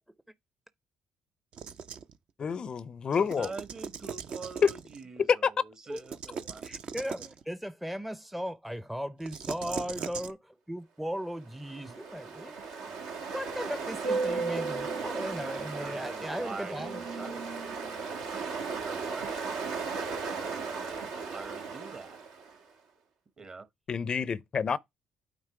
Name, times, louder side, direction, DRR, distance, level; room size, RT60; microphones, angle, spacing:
sound 1, 1.5-2.2 3.1-5.0 5.9-7.4 9.2-10.3, right 6 dB, 60° right, 0.6 m, -40 dB
voice 1, 2.4-3.5 4.6-4.7 5.3-5.4 23.9-24.8, left 6 dB, 45° left, 0.4 m, -27 dB
voice 2, 3.4-6.7 9.6-10.1 11.8-12.0 12.8-13.1 15.8-22.2 23.4-23.7 24.7-24.8, right 4 dB, 40° right, 1.2 m, -46 dB
voice 3, 6.6-12.6 13.3-17.0, equal, 5° right, 0.5 m, -37 dB
Ocean, 11.5-22.5, right 4 dB, 80° right, 1.2 m, -35 dB
9.0 x 3.1 x 4.8 m
supercardioid pair, 60°, 2 cm